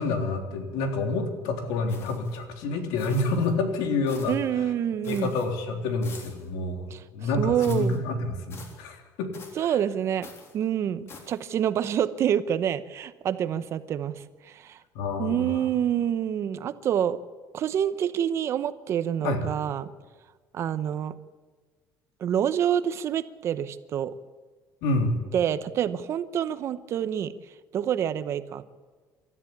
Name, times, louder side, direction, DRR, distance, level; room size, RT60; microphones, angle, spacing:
voice 1, 0.0-4.6 5.1-6.9 7.1-9.3 9.6-9.7 14.9-15.6 19.2-19.4 24.8-25.2, left 3 dB, 90° left, 5 dB, 3.6 m, -28 dB
sound 1, 1.9-2.4 3.0-3.5 4.1-4.5 5.0-5.5 6.0-6.5 7.6-8.0 8.5-8.8 9.3-9.7 10.2-10.6 11.1-11.5, left 4 dB, 40° left, 3.6 m, -47 dB
voice 2, 4.3-5.3 6.9-7.0 7.4-8.0 9.6-10.3 10.5-14.8 15.2-17.2 17.5-19.9 20.5-21.1 22.2-24.1 25.3-27.3 27.7-28.7, right 9 dB, 40° right, 13 dB, 1.0 m, -27 dB
26.0 x 13.5 x 8.7 m, 1.5 s
cardioid pair, 160°, 7 cm